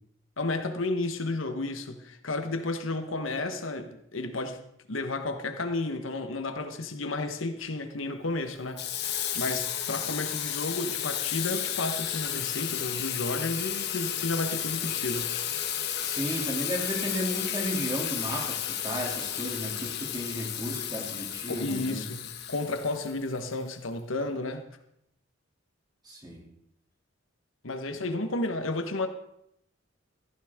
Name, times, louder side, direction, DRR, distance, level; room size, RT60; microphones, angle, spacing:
voice 1, 0.4-4.6 4.9-8.9 9.1-15.3 21.5-24.7 27.6-29.1, left 2 dB, 90° left, 7 dB, 1.4 m, -32 dB
Water tap faucet / Sink (filling or washing), 8.8-23.5, left 10 dB, 60° left, 1.4 m, -33 dB
voice 2, 16.0-22.0 26.0-26.4, equal, 20° right, -1 dB, 3.0 m, -34 dB
14.5 x 14.5 x 3.7 m, 0.78 s
head